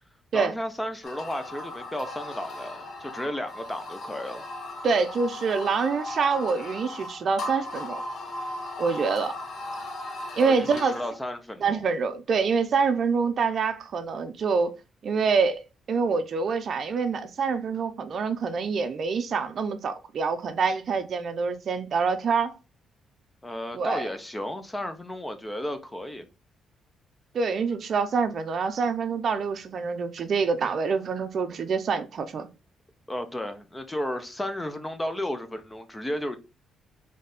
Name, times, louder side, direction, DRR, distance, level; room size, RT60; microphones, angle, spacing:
voice 1, 0.3-4.5 10.4-11.8 23.4-26.3 33.1-36.4, left 1 dB, 10° left, 0.6 m, -33 dB
sound 1, 1.0-11.2, left 2 dB, 45° left, 0.9 m, -37 dB
voice 2, 4.8-8.0 8.8-9.3 10.3-10.9 11.6-14.7 15.0-15.6 15.9-22.6 23.7-24.0 27.3-32.5, right 5 dB, 50° right, 0.5 m, -26 dB
4.1 x 3.2 x 3.4 m
cardioid pair, 130°, 0 cm